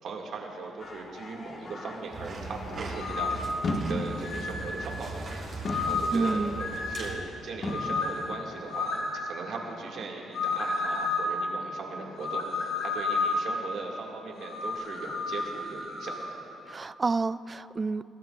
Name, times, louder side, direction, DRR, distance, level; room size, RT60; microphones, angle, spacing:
voice 1, 0.0-16.4, right 4 dB, 70° right, -1 dB, 2.3 m, -39 dB
sound 1, 0.8-5.4 5.6-7.4 7.6-9.0, left 2 dB, 50° left, 1.6 m, -38 dB
sound 2, 2.1-7.2, right 3 dB, 50° right, 3.7 m, -39 dB
sound 3, 2.9-3.5 4.2-4.7 5.6-6.2 6.6-7.1 7.6-8.2 8.7-9.1 10.3-11.3 12.2-13.5 14.4-16.3, left 4 dB, 75° left, 2.8 m, -31 dB
voice 2, 5.7-6.6 16.7-18.0, right 4 dB, 30° right, 16 dB, 0.3 m, -30 dB
23.0 x 17.0 x 2.6 m, 3.0 s
cardioid pair, 90°, 0 cm